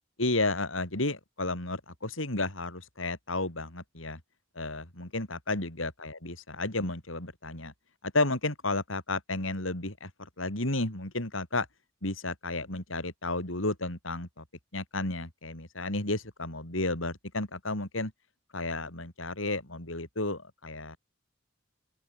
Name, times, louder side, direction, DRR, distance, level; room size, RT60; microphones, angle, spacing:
voice 1, 0.2-4.2 4.6-7.7 8.0-11.7 12.0-14.4 14.7-18.1 18.5-21.0, left 2 dB, 80° left, 5.2 m, -32 dB
open air
head